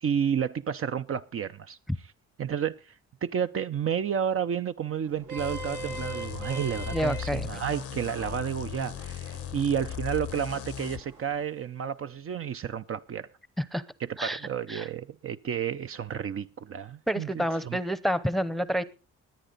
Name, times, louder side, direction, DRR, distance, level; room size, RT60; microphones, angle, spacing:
voice 1, 0.0-1.8 2.4-2.9 3.2-13.3 14.0-17.8, right 8 dB, 45° right, 0.6 m, -31 dB
Vehicle horn car horn honking, 5.0-11.4, right 3 dB, 75° right, 2.5 m, -43 dB
sound 1, 5.4-11.0, left 10 dB, 50° left, 0.7 m, -37 dB
voice 2, 6.9-7.5 13.6-13.8 14.2-14.4 14.7-14.9 17.1-18.8, equal, ahead, 0.8 m, -28 dB
20.5 x 9.1 x 4.0 m
cardioid pair, 90°, 30 cm